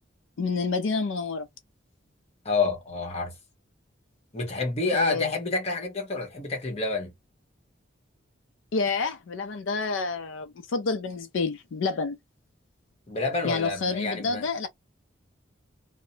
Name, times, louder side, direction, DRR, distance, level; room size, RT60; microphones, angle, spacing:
voice 1, 0.4-1.5 4.9-5.3 8.7-12.2 13.4-14.7, left 4 dB, 80° left, 0.4 m, -28 dB
voice 2, 2.4-3.3 4.3-7.1 13.1-14.4, left 3 dB, 30° left, 1.0 m, -28 dB
2.7 x 2.0 x 2.7 m
head